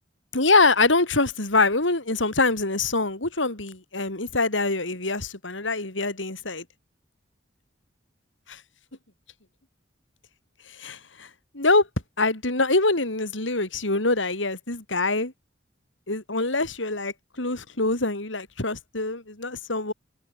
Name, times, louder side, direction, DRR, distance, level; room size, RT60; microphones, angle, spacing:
voice 1, 0.3-6.6 8.5-8.6 10.7-11.3 11.5-11.9 12.2-15.3 16.1-19.9, left 3 dB, 85° left, 4.5 m, -24 dB
head